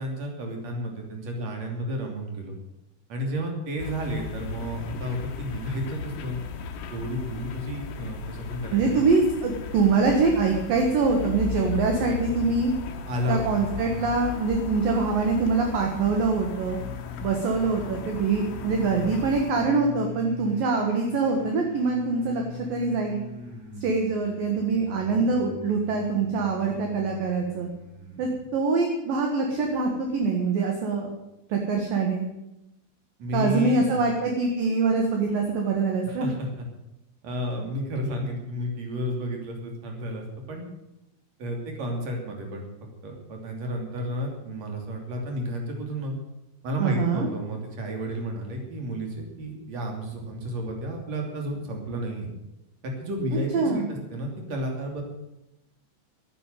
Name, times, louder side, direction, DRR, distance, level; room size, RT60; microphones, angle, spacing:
voice 1, 0.0-2.5 3.1-6.4 6.9-9.0 13.1-13.7 33.2-34.1 36.0-36.7 37.2-40.6 41.4-42.6 43.0-46.2 46.6-52.3 52.8-55.0, equal, 40° right, 2 dB, 3.3 m, -32 dB
sound 1, 3.8-19.5, left 7 dB, 85° left, 1.9 m, -36 dB
voice 2, 8.7-12.7 13.3-16.8 17.2-22.4 22.7-23.2 23.8-27.7 28.2-31.1 31.5-32.3 33.3-36.3 46.8-47.3 53.5-53.9, right 4 dB, 60° right, 2 dB, 2.6 m, -24 dB
sound 2, 16.5-28.4, left 2 dB, 80° right, 9.6 m, -42 dB
12.5 x 10.0 x 9.1 m, 0.92 s
omnidirectional pair, 5.8 m